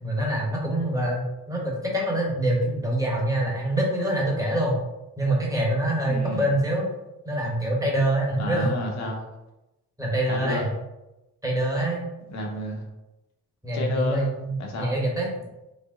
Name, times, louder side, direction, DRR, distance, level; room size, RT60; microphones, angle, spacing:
voice 1, 0.0-4.8 5.2-6.9 7.2-8.7 10.0-10.7 11.4-12.0 13.6-15.3, right 1 dB, 10° right, -2 dB, 1.2 m, -25 dB
voice 2, 6.1-6.5 8.4-9.2 10.3-10.7 12.3-12.8 13.7-14.3 14.6-14.9, left 2 dB, 65° left, 1 dB, 1.0 m, -30 dB
4.1 x 2.2 x 3.7 m, 0.97 s
cardioid pair, 90°, 30 cm